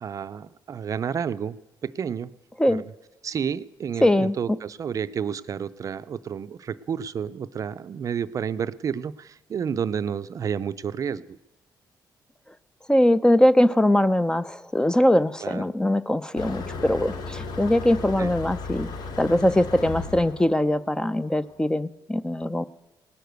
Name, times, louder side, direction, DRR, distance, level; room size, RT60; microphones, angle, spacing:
voice 1, 0.0-2.3 2.7-2.9 3.2-11.4 15.4-15.6 18.2-18.3, right 7 dB, 50° right, 14 dB, 0.5 m, -30 dB
voice 2, 4.0-4.4 12.9-18.9 19.2-22.6, left 1 dB, 10° left, 14 dB, 0.5 m, -21 dB
Motor vehicle (road), 16.4-21.5, left 4 dB, 65° left, 1.3 m, -35 dB
19.0 x 6.7 x 7.9 m, 1.0 s
cardioid pair, 100°, 8 cm